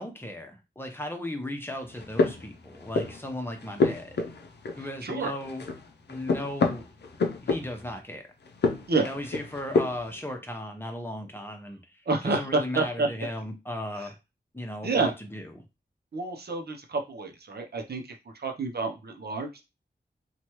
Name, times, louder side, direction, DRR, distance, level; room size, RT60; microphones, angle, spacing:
voice 1, 0.0-4.2 4.8-5.6 6.1-6.9 7.4-8.3 9.0-14.1 14.5-15.6, left 1 dB, 10° left, 3 dB, 0.8 m, -36 dB
sound 1, 1.8-3.3 3.6-5.1 5.4-8.0 8.5-10.2, left 3 dB, 75° left, 0.5 m, -28 dB
voice 2, 4.8-5.3 8.9-9.1 12.1-13.1 14.0-14.1 14.8-15.1 16.1-19.6, right 3 dB, 65° right, 3 dB, 0.7 m, -29 dB
2.9 x 2.3 x 3.0 m, 0.26 s
cardioid pair, 60°, 18 cm